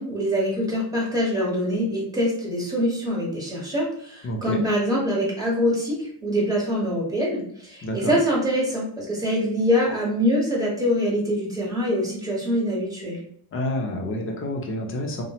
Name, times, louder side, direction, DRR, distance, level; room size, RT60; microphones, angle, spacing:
voice 1, 0.0-13.2, equal, 10° right, -4 dB, 0.9 m, -24 dB
voice 2, 4.2-4.6 7.8-8.2 13.5-15.2, left 1 dB, 30° left, 1 dB, 0.5 m, -28 dB
2.9 x 2.1 x 2.8 m, 0.63 s
cardioid pair, 125°, 47 cm